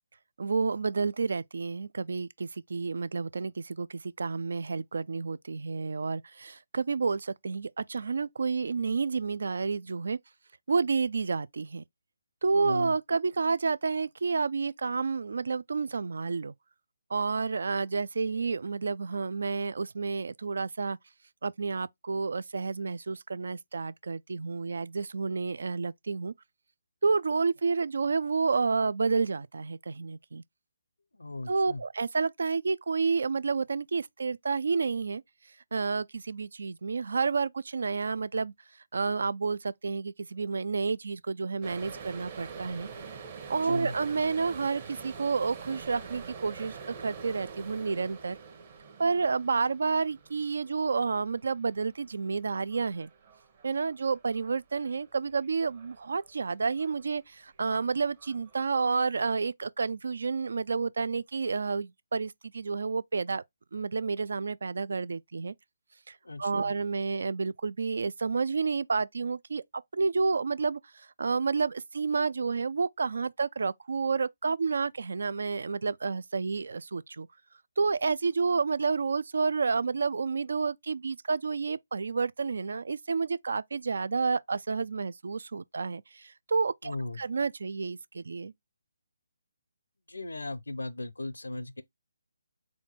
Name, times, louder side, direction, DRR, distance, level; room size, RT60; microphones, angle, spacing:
voice 1, 0.4-10.2 10.7-11.8 12.4-16.5 17.1-21.0 21.4-26.3 27.0-30.4 31.5-35.2 35.7-38.5 38.9-42.9 43.5-48.4 49.0-53.1 53.6-63.4 63.7-65.5 66.1-69.6 69.9-77.3 77.8-88.5, right 4 dB, 65° right, 0.3 m, -30 dB
voice 2, 12.5-12.9 31.2-31.8 43.6-43.9 66.3-66.7 86.8-87.2 90.1-91.8, left 2 dB, 85° left, 0.6 m, -37 dB
sound 1, 41.6-56.4 56.7-57.2 57.5-58.9, right 5 dB, 35° right, 0.9 m, -46 dB
4.2 x 2.3 x 4.2 m
figure-of-eight pair, 150°, 0 cm